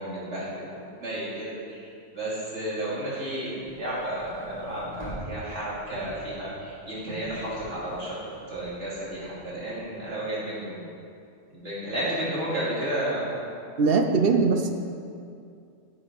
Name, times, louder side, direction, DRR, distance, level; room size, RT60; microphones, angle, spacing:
voice 1, 0.0-1.9 2.1-8.1 8.5-10.8 11.5-13.2, right 1 dB, 70° right, -8 dB, 3.2 m, -32 dB
sound 1, 3.6-9.9, equal, 20° left, 2.7 m, -44 dB
voice 2, 13.8-14.7, right 4 dB, 55° right, 5 dB, 0.9 m, -21 dB
9.0 x 7.2 x 5.3 m, 2.4 s
omnidirectional pair, 1.2 m